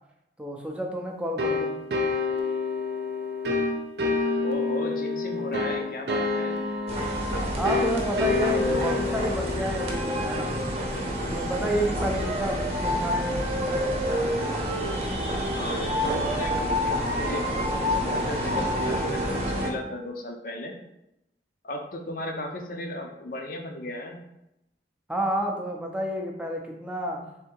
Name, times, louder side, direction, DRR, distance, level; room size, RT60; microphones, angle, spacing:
voice 1, 0.4-1.7 7.5-10.7 11.3-13.3 25.1-27.2, right 1 dB, 5° right, 0 dB, 0.5 m, -30 dB
sound 1, 1.4-11.9, left 3 dB, 65° right, 0.6 m, -29 dB
voice 2, 4.4-6.6 15.5-20.8 21.6-24.2, left 1 dB, 50° left, 3 dB, 0.6 m, -36 dB
sound 2, 6.9-19.7, equal, 35° right, 0.8 m, -28 dB
3.6 x 2.7 x 4.4 m, 0.86 s
head